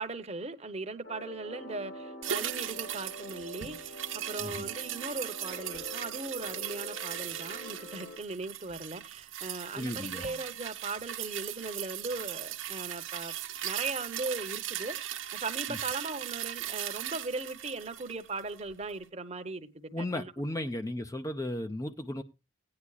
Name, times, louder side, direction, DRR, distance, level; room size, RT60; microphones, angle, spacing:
voice 1, 0.0-4.0 4.3-13.3 13.6-20.7, right 3 dB, 30° right, 0.9 m, -38 dB
sound 1, 1.0-8.2, left 1 dB, 45° left, 1.0 m, -46 dB
sound 2, 2.2-18.7 19.0-19.1, right 11 dB, 80° right, 1.0 m, -38 dB
voice 2, 9.8-10.2 15.7-15.8 19.9-22.2, left 1 dB, 15° left, 0.5 m, -35 dB
17.0 x 9.8 x 2.3 m
head